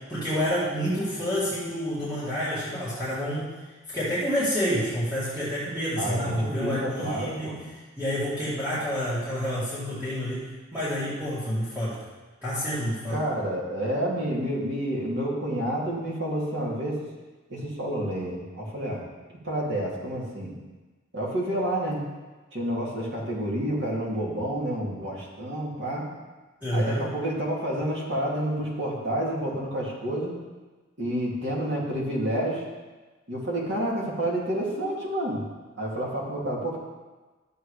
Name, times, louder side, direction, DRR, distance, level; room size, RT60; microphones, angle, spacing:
voice 1, 0.1-3.5 3.9-7.6 8.0-12.0 12.4-13.2 26.6-27.1, equal, 10° right, -13 dB, 2.5 m, -28 dB
voice 2, 5.9-7.6 13.1-17.0 17.5-19.0 19.4-20.5 21.1-22.0 22.5-26.0 26.7-30.3 31.0-32.6 33.3-35.4 35.8-36.8, right 1 dB, 60° right, -4 dB, 2.5 m, -29 dB
12.5 x 7.8 x 3.3 m, 1.3 s
head